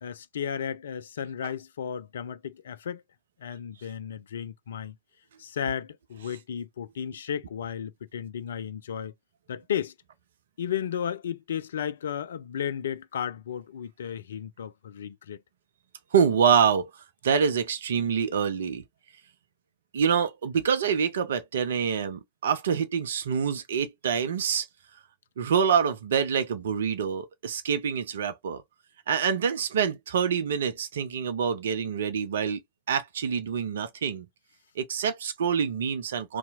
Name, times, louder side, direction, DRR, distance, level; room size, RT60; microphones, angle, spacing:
voice 1, 0.0-3.0 3.4-4.9 5.4-9.1 9.5-9.9 10.6-15.4, left 8 dB, 65° left, 0.3 m, -34 dB
voice 2, 16.1-16.9 17.2-18.8 19.9-24.7 25.4-28.6 29.1-32.6 32.9-34.3 34.8-36.4, right 7 dB, 65° right, 0.5 m, -26 dB
2.7 x 2.1 x 4.0 m
figure-of-eight pair, 90°, 0 cm